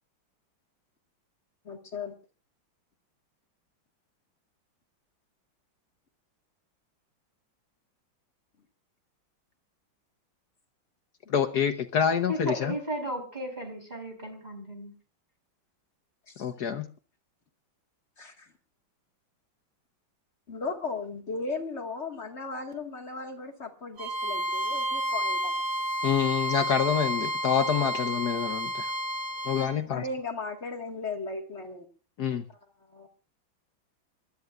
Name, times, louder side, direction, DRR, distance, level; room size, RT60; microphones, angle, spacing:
voice 1, 1.6-2.1 16.3-16.4 18.2-18.5 20.5-25.6 29.9-31.9 32.9-33.1, left 3 dB, 35° left, 2 dB, 2.1 m, -36 dB
voice 2, 11.3-12.7 16.4-16.9 26.0-28.9 29.4-30.0 32.2-32.4, left 8 dB, 60° left, 8 dB, 1.4 m, -27 dB
voice 3, 12.3-14.9, right 1 dB, 20° right, 3 dB, 4.1 m, -34 dB
Bowed string instrument, 24.0-29.7, equal, 55° right, 3.2 m, -30 dB
28.5 x 13.0 x 2.5 m, 0.33 s
omnidirectional pair, 2.2 m